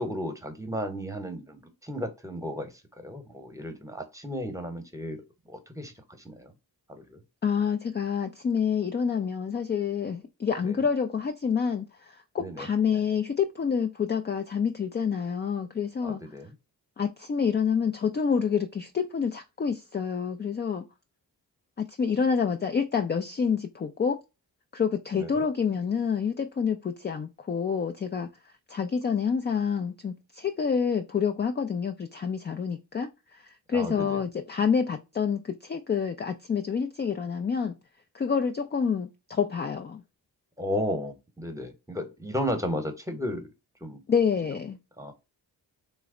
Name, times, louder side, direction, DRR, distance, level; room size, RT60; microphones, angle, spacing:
voice 1, 0.0-5.2 5.5-6.5 6.9-7.2 10.6-10.8 12.4-12.7 16.0-16.5 25.1-25.4 33.7-34.2 40.6-43.5 43.8-44.0 45.0-45.1, equal, 5° right, 0.9 m, -34 dB
voice 2, 7.4-16.2 17.0-20.8 21.8-24.2 24.7-28.3 28.7-33.1 33.7-37.8 38.1-40.0 44.1-44.8, left 6 dB, 25° left, 0.4 m, -28 dB
3.1 x 2.1 x 3.7 m
supercardioid pair, 40°, 45 cm